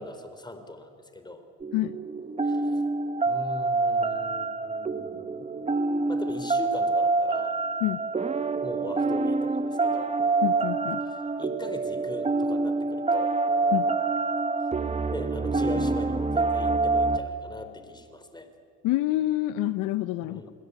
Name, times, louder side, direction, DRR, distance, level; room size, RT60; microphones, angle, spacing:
voice 1, 0.0-1.4 2.4-2.8 3.3-5.5 6.1-7.6 8.6-10.1 11.0-13.4 15.1-18.5 20.2-20.5, left 1 dB, 10° left, 8 dB, 3.9 m, -40 dB
sound 1, 1.6-17.2, right 3 dB, 20° right, 1.3 m, -26 dB
voice 2, 10.4-11.0 13.7-13.9 18.8-20.4, left 15 dB, 70° left, 14 dB, 0.9 m, -27 dB
27.5 x 21.5 x 8.3 m, 2.3 s
supercardioid pair, 90°, 34 cm